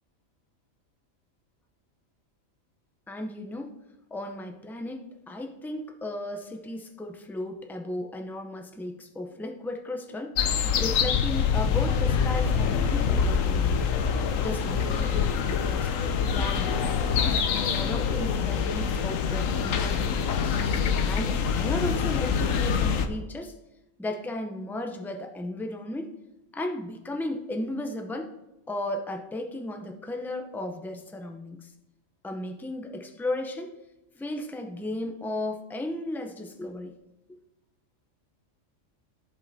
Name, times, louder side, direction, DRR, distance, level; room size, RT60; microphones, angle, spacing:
voice 1, 3.1-3.7 4.1-10.3 10.8-13.9 14.4-15.9 16.3-17.5 17.8-20.6 21.0-23.5 24.0-26.1 26.5-28.3 28.7-31.7 32.2-33.7 34.2-36.9 37.3-37.4, left 1 dB, 5° left, 4 dB, 0.3 m, -35 dB
sound 1, 10.4-23.1, left 6 dB, 85° left, 1.1 m, -25 dB
14.5 x 5.4 x 2.7 m, 0.96 s
omnidirectional pair, 1.3 m